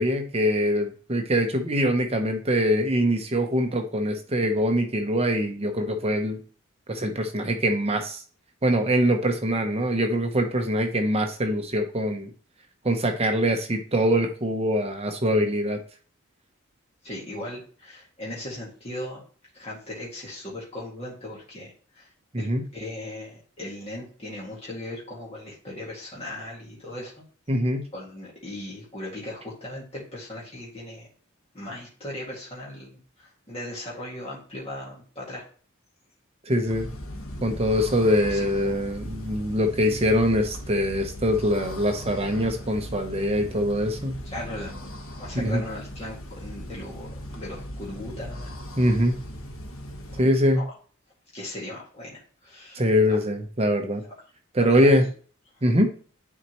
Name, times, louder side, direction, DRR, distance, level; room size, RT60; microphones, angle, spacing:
voice 1, 0.0-6.4 6.9-8.2 8.6-12.3 12.8-15.8 22.3-22.6 27.5-27.9 36.5-36.9 37.4-44.2 45.3-45.6 48.8-49.2 50.2-50.6 52.7-54.0 54.5-55.0 55.6-55.9, equal, 30° right, 5 dB, 0.8 m, -23 dB
voice 2, 17.0-19.2 19.5-22.1 22.4-22.5 22.7-27.1 27.9-31.1 31.5-35.4 38.3-38.7 44.2-48.5 50.1-50.7 51.3-52.8 53.1-53.2 54.0-54.1 54.6-54.9, left 1 dB, 30° left, -6 dB, 2.1 m, -38 dB
sound 1, 36.7-50.2, equal, 75° left, 1.3 m, -38 dB
9.5 x 4.2 x 3.0 m, 0.42 s
head